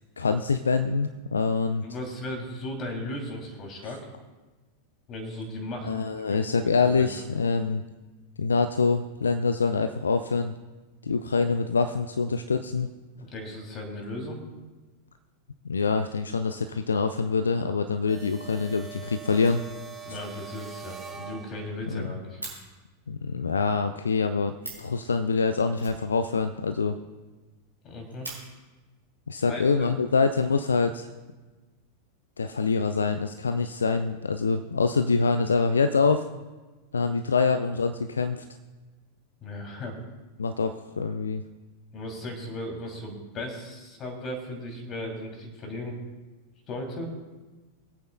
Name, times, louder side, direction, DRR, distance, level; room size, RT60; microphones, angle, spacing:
voice 1, 0.2-1.8 5.9-7.8 8.4-10.5 11.0-12.9 15.7-19.6 21.9-22.1 23.1-27.0 29.3-31.1 32.4-36.3 36.9-38.4 40.4-41.4, left 4 dB, 75° left, 9 dB, 0.4 m, -25 dB
voice 2, 1.8-4.1 5.1-5.9 6.3-7.1 13.1-14.4 20.0-22.4 27.8-28.3 29.5-29.9 39.4-40.0 41.9-45.9 46.7-47.1, left 1 dB, 30° left, 2 dB, 2.9 m, -36 dB
sound 1, 18.1-22.0, right 7 dB, 15° right, 1.3 m, -43 dB
Fire, 19.3-20.2 20.5-20.6 20.9-21.0 21.2-21.3 21.6-22.6 24.3-24.4 24.6-25.0 25.7-26.7 27.0-27.1 27.3-27.4 27.8-28.4 29.4-29.5 30.1-30.7, right 2 dB, 85° right, 4.2 m, -43 dB
23.0 x 8.5 x 2.2 m, 1.2 s
figure-of-eight pair, 90°, 0 cm